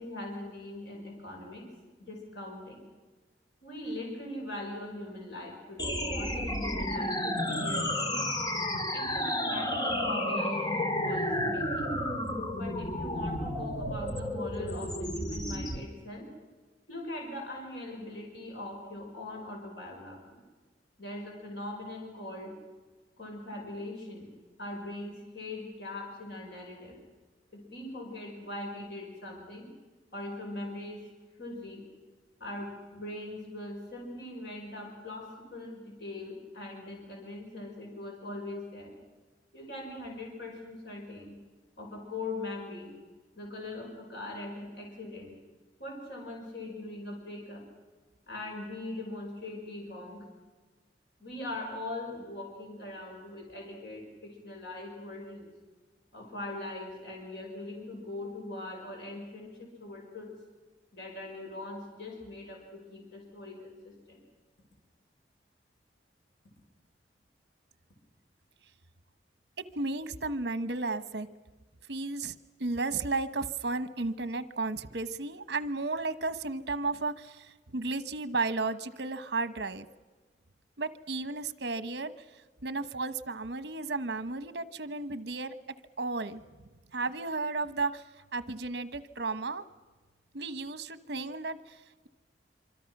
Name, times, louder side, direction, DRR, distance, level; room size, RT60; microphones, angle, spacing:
voice 1, 0.0-1.7 2.0-2.9 3.6-8.4 8.9-11.9 12.6-16.3 16.9-20.4 21.0-22.5 23.2-24.3 24.6-27.0 27.5-29.7 30.1-31.0 31.4-31.8 32.4-38.9 39.5-41.4 41.8-42.9 43.4-45.4 45.8-47.6 48.3-50.3 51.2-55.5 56.1-60.3 60.9-64.2, left 2 dB, 65° left, 0 dB, 5.7 m, -41 dB
sound 1, 5.8-15.8, left 1 dB, 25° left, 1.8 m, -31 dB
voice 2, 69.7-71.3 71.9-72.3 72.6-79.9 80.8-82.1 82.6-85.5 86.0-86.4 86.9-88.1 88.3-89.7 90.3-92.1, right 3 dB, 65° right, 12 dB, 1.1 m, -33 dB
25.5 x 25.5 x 6.0 m, 1.3 s
head